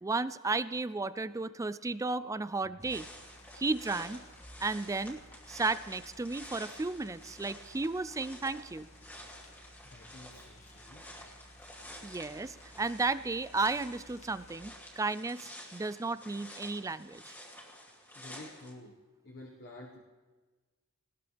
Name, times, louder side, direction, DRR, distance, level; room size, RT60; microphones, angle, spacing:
voice 1, 0.0-3.1 3.5-4.2 4.6-5.2 5.5-8.9 12.0-17.3, right 3 dB, 15° right, 15 dB, 0.4 m, -34 dB
sound 1, 2.8-14.6, equal, 35° left, 2.0 m, -56 dB
sound 2, 2.9-18.7, left 1 dB, 10° left, 2.5 m, -51 dB
voice 2, 9.9-11.0 18.1-18.9 19.2-20.0, left 1 dB, 50° left, -1 dB, 1.6 m, -50 dB
19.5 x 19.5 x 3.5 m, 1.3 s
head